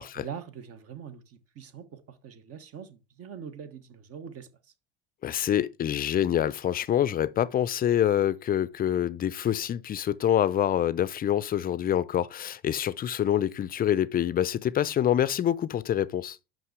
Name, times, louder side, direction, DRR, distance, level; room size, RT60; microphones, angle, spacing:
voice 1, 0.1-4.5, right 7 dB, 50° right, 1.2 m, -43 dB
voice 2, 5.2-16.4, left 10 dB, 30° left, 0.5 m, -26 dB
5.8 x 5.3 x 4.8 m
hypercardioid pair, 80°, 32 cm